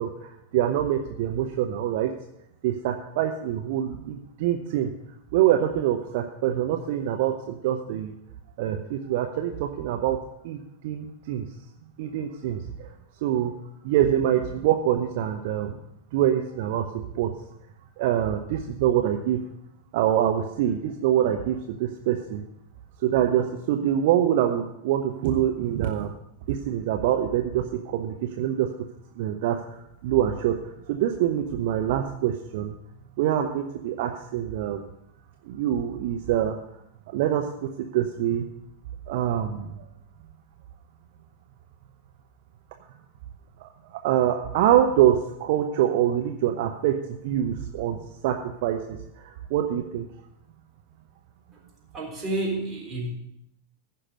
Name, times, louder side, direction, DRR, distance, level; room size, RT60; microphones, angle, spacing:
voice 1, 0.0-2.1 2.6-4.9 5.3-8.1 8.6-10.2 10.4-11.4 12.0-12.9 13.2-13.5 13.8-15.8 16.1-17.3 18.0-19.4 19.9-22.4 23.0-26.1 26.5-28.7 29.2-29.8 30.0-30.5 30.9-32.7 33.2-34.8 35.4-36.6 37.1-38.5 39.1-39.7 43.6-47.0 47.2-48.0 48.2-48.4 48.6-50.0, right 11 dB, 50° right, 4 dB, 0.8 m, -25 dB
voice 2, 51.9-53.2, right 2 dB, 15° right, -2 dB, 3.9 m, -30 dB
15.0 x 5.9 x 6.4 m, 0.79 s
figure-of-eight pair, 90°, 0 cm